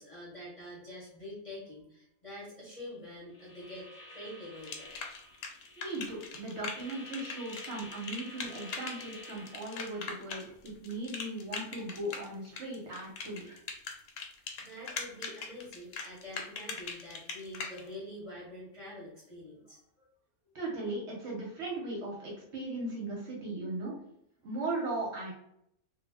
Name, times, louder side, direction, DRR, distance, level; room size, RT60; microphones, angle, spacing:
voice 1, 0.0-3.9 4.1-4.9 10.8-10.9 14.6-19.8, left 1 dB, 30° left, -6 dB, 0.7 m, -46 dB
sound 1, 3.3-10.1, left 1 dB, 60° left, 0.9 m, -50 dB
sound 2, 4.6-17.8, left 5 dB, 85° left, 1.0 m, -40 dB
voice 2, 5.8-13.6 20.5-23.9 24.4-25.3, right 2 dB, 60° right, -3 dB, 0.8 m, -38 dB
2.4 x 2.0 x 3.3 m, 0.73 s
omnidirectional pair, 1.5 m